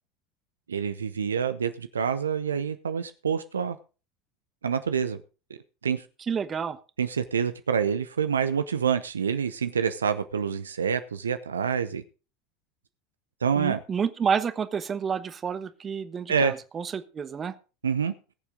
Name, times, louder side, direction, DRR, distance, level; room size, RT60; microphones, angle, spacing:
voice 1, 0.7-3.8 4.6-5.2 5.8-6.0 7.0-12.0 13.4-13.8 16.3-16.6 17.8-18.1, right 7 dB, 85° right, 0.7 m, -27 dB
voice 2, 6.3-6.8 13.6-17.5, right 6 dB, 30° right, 1.1 m, -29 dB
20.5 x 7.2 x 3.8 m
hypercardioid pair, 80°, 0 cm